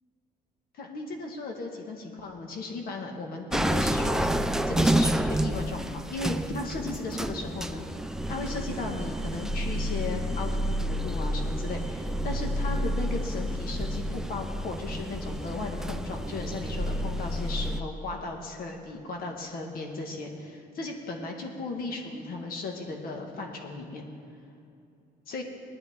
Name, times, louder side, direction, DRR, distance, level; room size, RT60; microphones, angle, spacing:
voice 1, 0.7-4.3 4.7-24.1 25.3-25.4, left 3 dB, 60° left, 2 dB, 1.7 m, -36 dB
sound 1, 3.5-17.8, equal, 5° right, 0.5 m, -29 dB
18.5 x 10.5 x 3.7 m, 2.7 s
cardioid pair, 110°, 17 cm